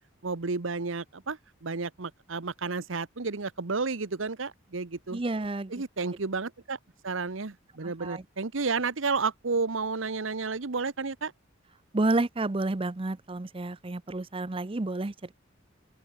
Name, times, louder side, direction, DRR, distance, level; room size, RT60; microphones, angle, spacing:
voice 1, 0.2-5.2 5.7-6.8 7.0-11.3, right 4 dB, 75° right, 1.1 m, -31 dB
voice 2, 5.1-5.7 7.8-8.2 11.9-15.3, right 2 dB, 25° right, 0.6 m, -30 dB
open air
head